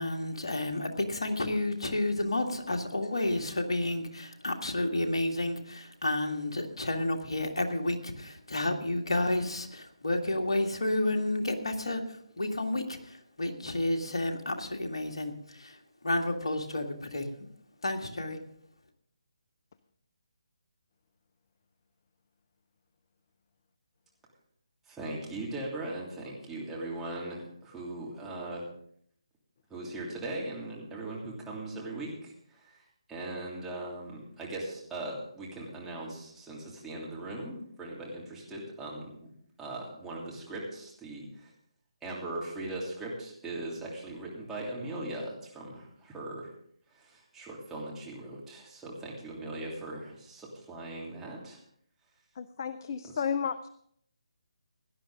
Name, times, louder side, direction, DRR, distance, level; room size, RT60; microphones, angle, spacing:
voice 1, 0.0-12.0 12.4-15.8 16.0-17.3 17.8-18.4, left 1 dB, 65° left, 4 dB, 2.0 m, -31 dB
voice 2, 24.9-28.6 29.7-39.1 39.6-41.5 42.0-46.5 46.9-51.6 53.0-53.1, right 2 dB, 5° right, -5 dB, 3.0 m, -39 dB
voice 3, 52.4-53.7, left 7 dB, 40° left, 14 dB, 0.5 m, -32 dB
17.0 x 11.5 x 3.7 m, 0.66 s
figure-of-eight pair, 150°, 3 cm